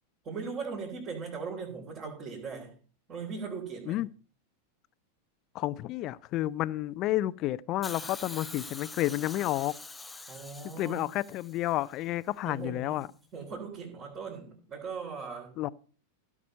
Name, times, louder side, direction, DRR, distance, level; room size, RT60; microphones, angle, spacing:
voice 1, 0.2-2.7 3.1-4.0 10.3-11.1 12.4-13.0 13.3-15.5, right 5 dB, 30° right, 3.6 m, -39 dB
voice 2, 5.5-9.7 10.8-13.1 15.6-15.7, left 15 dB, 35° left, 0.5 m, -30 dB
Hiss, 7.8-12.0 13.0-13.1, left 3 dB, 10° left, 0.8 m, -45 dB
16.0 x 6.1 x 5.4 m
figure-of-eight pair, 90°, 0 cm